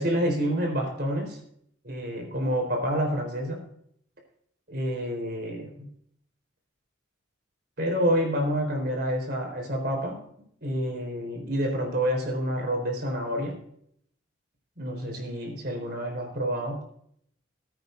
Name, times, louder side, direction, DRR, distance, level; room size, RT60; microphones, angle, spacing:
voice 1, 0.0-1.4 1.8-3.7 4.7-5.9 7.8-10.2 10.6-13.6 14.8-16.8, equal, 50° right, 3 dB, 4.1 m, -28 dB
19.5 x 9.1 x 2.6 m, 0.67 s
head